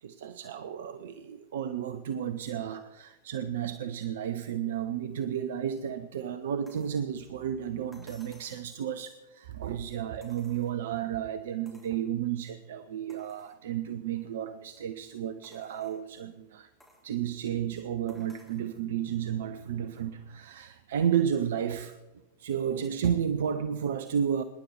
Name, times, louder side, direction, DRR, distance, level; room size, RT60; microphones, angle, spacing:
voice 1, 0.0-16.7 17.0-22.0 22.4-24.4, right 9 dB, 60° right, 12 dB, 0.7 m, -32 dB
sound 1, 6.7-7.0 7.9-8.7 10.2-11.0 11.7-12.0 12.5-12.6 13.1-13.6 14.2-14.3 15.4-16.0 16.8-17.1 18.1-18.7 19.9-20.0, left 1 dB, 5° left, 3.8 m, -59 dB
26.0 x 10.5 x 4.6 m, 1.1 s
figure-of-eight pair, 90°, 0 cm